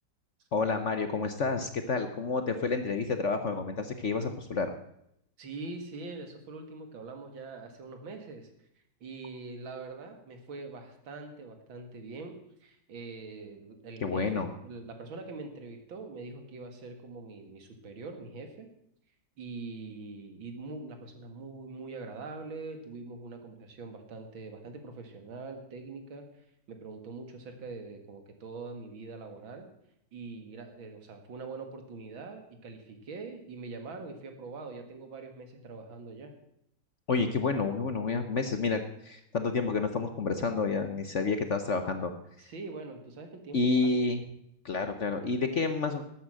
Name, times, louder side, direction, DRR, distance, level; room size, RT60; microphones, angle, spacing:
voice 1, 0.5-4.7 14.0-14.5 37.1-42.1 43.5-44.2 44.6-46.0, left 4 dB, 50° left, 8 dB, 1.0 m, -29 dB
voice 2, 5.4-8.5 9.0-12.3 12.6-18.7 19.4-26.2 26.7-29.7 30.1-36.3 42.4-43.9, right 3 dB, 80° right, 5 dB, 2.7 m, -43 dB
12.5 x 8.8 x 7.7 m, 0.76 s
omnidirectional pair, 2.1 m